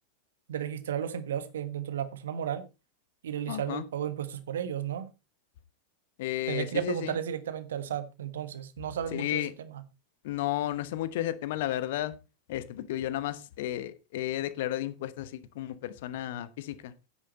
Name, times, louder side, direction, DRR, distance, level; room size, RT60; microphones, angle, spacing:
voice 1, 0.5-2.6 3.2-5.1 6.5-9.8, right 9 dB, 60° right, 12 dB, 1.4 m, -34 dB
voice 2, 3.5-3.8 6.2-7.1 9.1-9.5 10.2-12.1 12.5-16.9, left 13 dB, 55° left, 14 dB, 1.1 m, -33 dB
10.0 x 9.0 x 4.3 m, 0.28 s
figure-of-eight pair, 90°, 0 cm